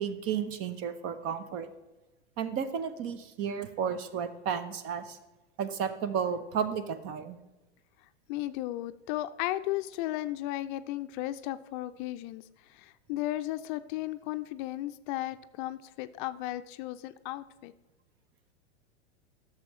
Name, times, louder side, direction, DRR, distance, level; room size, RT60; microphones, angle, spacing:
voice 1, 0.0-1.7 2.4-5.2 5.6-7.4, right 7 dB, 45° right, 12 dB, 0.8 m, -33 dB
voice 2, 8.3-12.4 12.7-17.7, left 15 dB, 45° left, 11 dB, 0.5 m, -35 dB
11.5 x 6.8 x 3.1 m, 1.1 s
hypercardioid pair, 105°, 34 cm